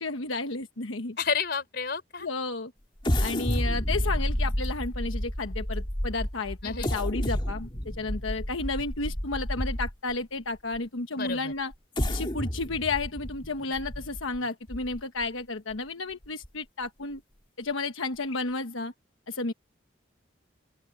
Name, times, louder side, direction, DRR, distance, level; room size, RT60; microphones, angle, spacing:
voice 1, 0.0-1.2 2.2-2.7 3.2-11.7 12.1-17.2 17.6-18.9 19.3-19.5, left 3 dB, 85° left, 1.2 m, -32 dB
voice 2, 1.2-2.3 6.6-6.9 11.2-11.5, left 5 dB, 55° left, 4.2 m, -31 dB
sound 1, 3.0-10.1 10.7-10.8 11.7-15.2 15.7-15.8 16.2-16.5, equal, 25° left, 2.6 m, -30 dB
open air
head